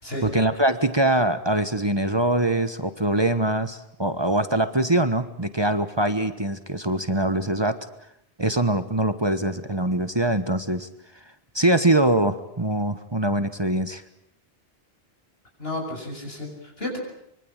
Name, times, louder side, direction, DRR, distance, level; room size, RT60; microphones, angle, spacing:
voice 1, 0.2-7.8 8.4-10.9 11.5-14.0, right 1 dB, 25° right, 11 dB, 1.3 m, -23 dB
voice 2, 15.6-17.0, left 1 dB, 70° left, 1 dB, 7.7 m, -32 dB
25.0 x 24.0 x 9.0 m, 0.73 s
omnidirectional pair, 1.0 m